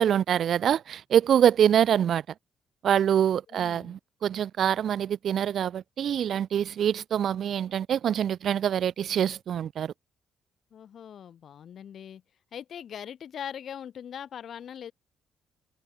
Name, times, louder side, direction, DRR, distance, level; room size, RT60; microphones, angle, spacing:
voice 1, 0.0-2.2 2.8-9.9, right 9 dB, 65° right, 0.7 m, -25 dB
voice 2, 3.5-4.0 10.7-12.2 12.5-14.9, left 9 dB, 60° left, 1.2 m, -41 dB
cardioid pair, 90°, 0 cm